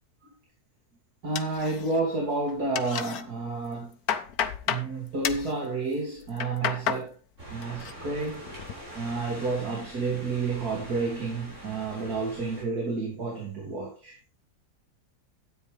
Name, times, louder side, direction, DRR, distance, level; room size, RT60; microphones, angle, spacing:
voice 1, 1.2-4.0 4.7-7.1 7.5-8.4 8.9-14.2, right 3 dB, 70° right, -3 dB, 3.4 m, -30 dB
sound 1, 1.4-2.2 2.5-3.2 3.7-4.9 5.2-5.5 6.2-7.1 7.4-7.9 8.3-8.7, left 9 dB, 70° left, 1.3 m, -31 dB
sound 2, 7.4-12.6, right 1 dB, 50° right, 7.5 m, -44 dB
13.0 x 9.4 x 3.5 m, 0.33 s
omnidirectional pair, 1.7 m